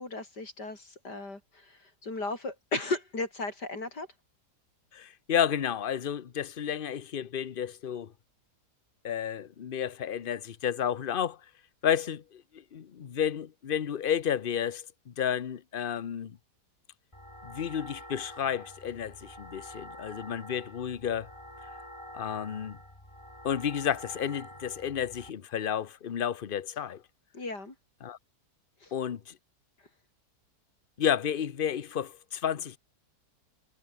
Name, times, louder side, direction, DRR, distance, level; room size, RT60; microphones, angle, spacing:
voice 1, 0.0-4.1 27.3-27.7 28.8-28.9, left 2 dB, 80° left, 5.9 m, -35 dB
voice 2, 4.9-8.1 9.0-11.4 11.8-16.4 17.4-21.3 22.1-22.8 23.4-27.0 28.0-28.2 28.9-29.3 31.0-32.8, left 9 dB, 45° left, 0.8 m, -31 dB
sound 1, 17.1-25.3, left 1 dB, 15° left, 7.2 m, -47 dB
omnidirectional pair, 1.8 m